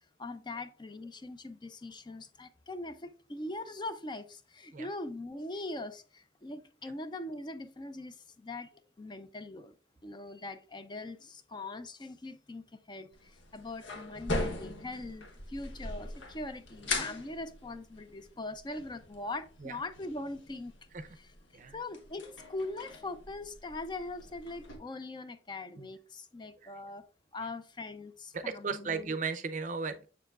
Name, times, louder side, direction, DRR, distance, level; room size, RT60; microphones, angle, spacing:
voice 1, 0.2-9.7 10.0-20.7 21.2-27.0 27.3-29.1, left 2 dB, 25° left, 0.4 m, -41 dB
sound 1, 13.1-24.8, left 2 dB, 90° left, 1.2 m, -41 dB
voice 2, 28.3-30.1, right 5 dB, 45° right, 0.5 m, -36 dB
7.2 x 6.7 x 2.4 m
head